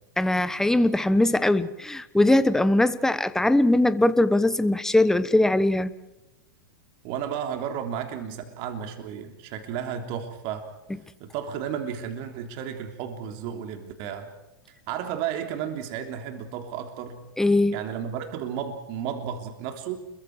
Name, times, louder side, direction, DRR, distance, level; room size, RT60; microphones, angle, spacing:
voice 1, 0.2-5.9 17.4-17.8, left 1 dB, 5° left, 14 dB, 1.1 m, -21 dB
voice 2, 7.0-10.7 11.2-14.3 14.9-17.3 17.7-20.0, right 8 dB, 50° right, 5 dB, 3.3 m, -33 dB
29.5 x 22.5 x 4.8 m, 0.96 s
hypercardioid pair, 115°, 12 cm